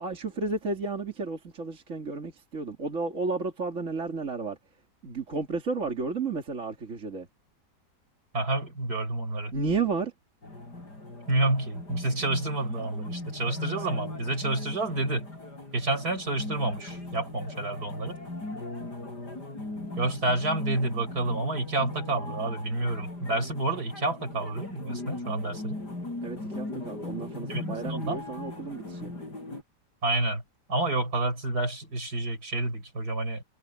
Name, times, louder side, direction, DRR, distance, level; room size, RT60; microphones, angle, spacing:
voice 1, 0.0-4.6 5.0-7.3 9.5-10.1 26.2-29.1, right 4 dB, 45° right, 2.6 m, -32 dB
voice 2, 8.3-9.5 11.3-15.3 15.7-18.2 20.0-25.8 27.5-28.2 30.0-30.4 30.7-33.4, right 2 dB, 65° right, 6.3 m, -29 dB
sound 1, 10.4-29.6, left 2 dB, 70° left, 8.0 m, -39 dB
omnidirectional pair, 1.8 m